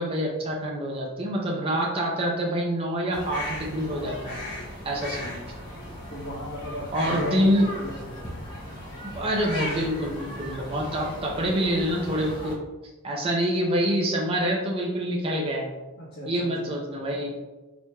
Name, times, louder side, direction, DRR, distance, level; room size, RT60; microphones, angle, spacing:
voice 1, 0.0-4.4 4.8-5.4 6.9-7.6 9.1-12.6 13.0-15.6 16.3-17.3, equal, 25° right, -1 dB, 0.4 m, -26 dB
sound 1, 3.1-12.5, left 1 dB, 20° left, 0.8 m, -37 dB
voice 2, 6.1-7.5 7.8-8.3 16.0-16.7, left 1 dB, 45° left, -12 dB, 1.1 m, -36 dB
4.1 x 3.1 x 2.2 m, 1.1 s
head